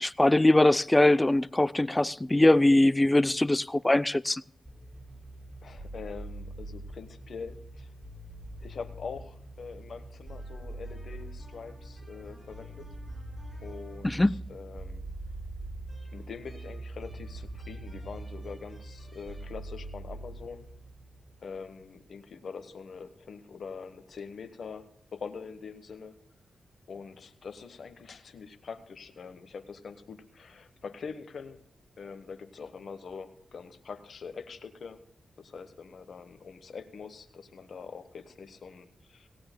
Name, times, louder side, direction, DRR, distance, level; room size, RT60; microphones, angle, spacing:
voice 1, 0.0-4.4 14.0-14.4, left 1 dB, 20° left, 0.5 m, -22 dB
sound 1, 4.7-22.0, right 1 dB, 15° right, 5.7 m, -44 dB
voice 2, 5.6-7.9 8.6-12.9 13.6-14.2 14.5-15.1 16.1-20.7 21.4-26.2 26.9-31.6 32.0-35.0 35.4-39.3, left 5 dB, 65° left, 1.1 m, -44 dB
sound 2, 13.1-18.9, right 3 dB, 45° right, 0.7 m, -44 dB
17.5 x 17.0 x 2.2 m
supercardioid pair, 40°, 0 cm